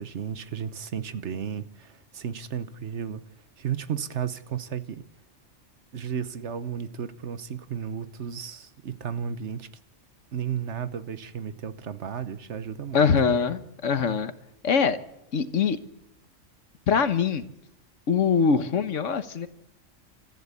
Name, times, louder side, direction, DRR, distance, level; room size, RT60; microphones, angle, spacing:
voice 1, 0.0-3.2 3.6-5.0 5.9-9.7 10.3-13.4, right 8 dB, 65° right, 13 dB, 1.3 m, -33 dB
voice 2, 12.9-14.3 14.6-15.0 15.3-15.8 16.9-17.5 18.1-19.5, left 6 dB, 75° left, 12 dB, 1.5 m, -23 dB
30.0 x 14.0 x 8.3 m, 0.84 s
omnidirectional pair, 1.3 m